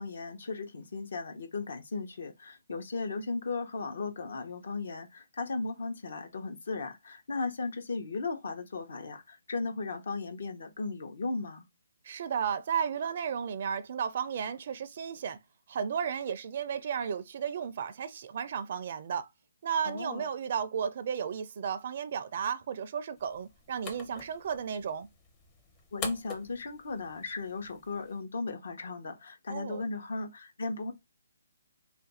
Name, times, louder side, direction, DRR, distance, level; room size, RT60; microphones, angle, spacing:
voice 1, 0.0-11.7 19.8-20.3 25.9-30.9, left 3 dB, 65° left, 0.8 m, -36 dB
voice 2, 12.0-15.4 15.7-19.3 19.6-25.1 29.5-29.8, right 7 dB, 45° right, 0.4 m, -34 dB
sound 1, 23.2-28.2, left 4 dB, 20° left, 0.6 m, -46 dB
2.5 x 2.3 x 4.0 m
hypercardioid pair, 155°, 0 cm